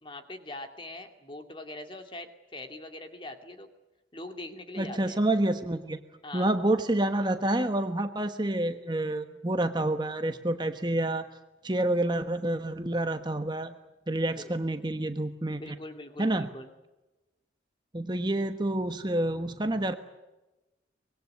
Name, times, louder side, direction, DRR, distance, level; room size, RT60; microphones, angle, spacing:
voice 1, 0.0-3.7 4.1-5.2 6.2-6.5 14.3-14.5 15.5-16.7, left 1 dB, 25° left, 6 dB, 2.4 m, -42 dB
voice 2, 4.8-6.0 6.3-11.3 11.6-13.8 14.1-15.7 16.2-16.5 17.9-19.9, right 1 dB, 25° right, 8 dB, 1.2 m, -28 dB
25.0 x 21.0 x 9.6 m, 1.1 s
head